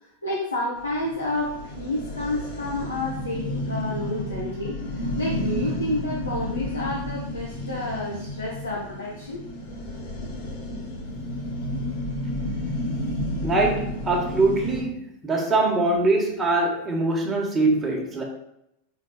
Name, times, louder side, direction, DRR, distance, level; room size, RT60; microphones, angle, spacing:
voice 1, 0.0-9.4, left 1 dB, 80° left, -5 dB, 1.1 m, -30 dB
sound 1, 0.8-14.8, left 1 dB, 55° left, 1.5 m, -31 dB
voice 2, 13.4-18.2, right 2 dB, 15° right, -1 dB, 1.5 m, -23 dB
5.6 x 4.3 x 4.1 m, 0.80 s
figure-of-eight pair, 90°, 0 cm